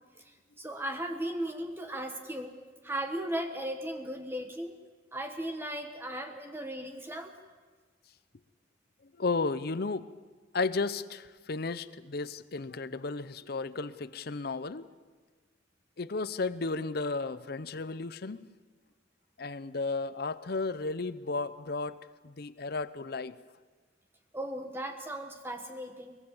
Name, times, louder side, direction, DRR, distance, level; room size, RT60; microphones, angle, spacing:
voice 1, 0.2-2.5 2.8-4.8 5.1-7.4 24.3-26.2, right 1 dB, 10° right, 5 dB, 1.2 m, -37 dB
voice 2, 9.2-10.1 10.5-14.9 16.0-18.5 19.4-22.0 22.2-23.3, left 3 dB, 55° left, 15 dB, 0.7 m, -33 dB
23.5 x 21.0 x 7.2 m, 1.4 s
head